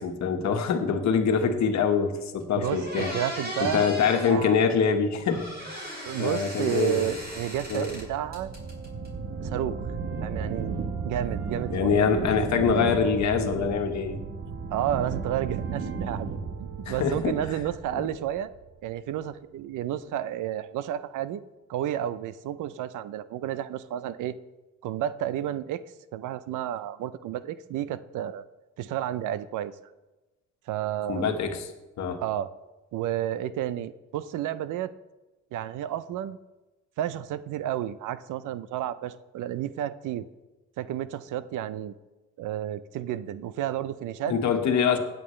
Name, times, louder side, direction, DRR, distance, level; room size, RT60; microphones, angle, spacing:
voice 1, 0.0-3.1 3.6-5.9 6.2-7.1 7.7-7.9 11.7-14.2 16.9-17.4 31.1-31.7 32.0-32.2 44.3-45.0, left 6 dB, 65° left, 5 dB, 1.5 m, -24 dB
sound 1, 2.1-2.2 2.6-4.4 5.3-8.1 8.3-9.1, equal, 30° right, 4.5 m, -37 dB
voice 2, 2.6-3.9 4.2-4.6 6.0-8.5 9.4-9.8 10.2-10.8 11.0-12.1 14.7-16.3 16.6-18.5 18.8-21.4 21.7-24.4 24.8-25.8 26.1-28.5 28.8-29.7 30.7-31.3 32.2-32.5 32.9-34.9 35.5-36.4 37.0-40.3 40.8-41.9 42.4-44.3, right 11 dB, 85° right, 15 dB, 0.6 m, -31 dB
sound 2, 6.9-19.0, right 5 dB, 50° right, 1.1 m, -35 dB
16.5 x 9.1 x 3.2 m, 1.1 s
cardioid pair, 90°, 30 cm